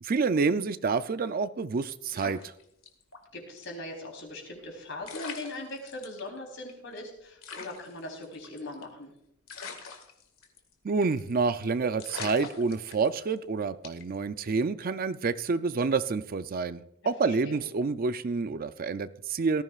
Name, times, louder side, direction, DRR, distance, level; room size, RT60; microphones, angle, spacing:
voice 1, 0.0-2.5 10.8-19.6, right 4 dB, 45° right, 12 dB, 0.5 m, -28 dB
sound 1, 2.0-3.2 3.6-3.7 4.7-4.8 5.0-6.2 6.7-6.8 7.0-7.1 7.4-9.0 9.5-10.7 11.0-11.3 11.6-11.7 12.0-13.4 13.8-14.1, left 4 dB, 85° left, 2.0 m, -42 dB
voice 2, 3.3-9.1 17.0-17.6, left 2 dB, 65° left, 1 dB, 3.7 m, -40 dB
18.0 x 14.5 x 2.4 m, 0.77 s
head